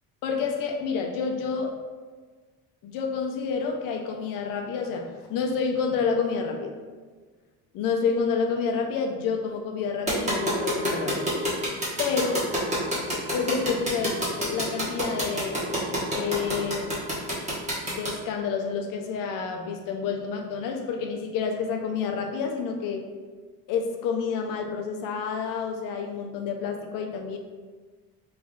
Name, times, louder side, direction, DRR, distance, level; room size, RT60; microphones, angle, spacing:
voice 1, 0.2-1.7 2.8-6.8 7.7-11.3 12.0-12.4 13.3-15.6 16.1-16.9 17.9-23.1 23.7-27.4, left 5 dB, 65° left, 3 dB, 0.6 m, -29 dB
sound 1, 10.1-18.1, equal, 20° right, 1.2 m, -27 dB
3.2 x 2.6 x 3.7 m, 1.4 s
cardioid pair, 110°, 36 cm